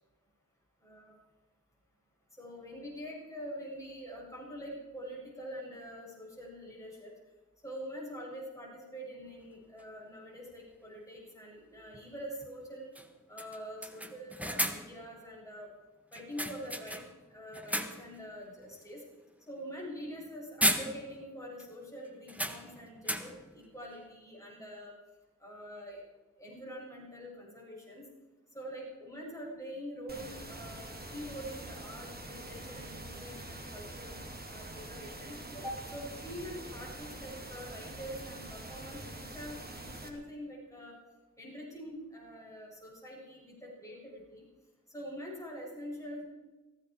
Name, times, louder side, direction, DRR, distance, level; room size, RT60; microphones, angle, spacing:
voice 1, 0.8-1.1 2.4-7.1 7.6-12.9 13.3-15.7 16.1-19.0 19.5-24.9 25.4-26.0 26.4-28.1 28.5-34.2 34.5-41.0 41.4-44.4 44.9-46.2, equal, 10° left, -4 dB, 7.5 m, -45 dB
sound 1, 9.8-9.9 11.9-12.1 12.4-12.5 12.9-13.1 13.4-15.0 16.1-17.2 17.5-18.2 18.6-18.8 20.1-20.3 20.6-21.3 21.6-21.7 22.3-23.5, equal, 5° right, 1.6 m, -35 dB
sound 2, 30.1-40.1, right 1 dB, 30° right, 2.8 m, -45 dB
18.5 x 16.0 x 4.8 m, 1.2 s
wide cardioid pair, 70°, 30 cm